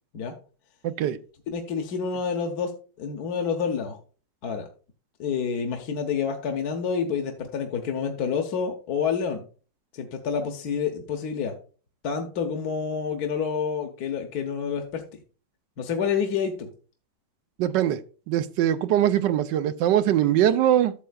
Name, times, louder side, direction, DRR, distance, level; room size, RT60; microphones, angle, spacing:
voice 1, 0.8-1.2 17.6-18.0 18.3-20.9, right 11 dB, 80° right, 1.3 m, -22 dB
voice 2, 1.5-2.7 3.0-4.0 4.4-4.7 5.2-9.4 9.9-11.5 12.0-15.0 15.8-16.7, left 6 dB, 60° left, 1.5 m, -28 dB
12.5 x 7.5 x 2.4 m
omnidirectional pair, 1.9 m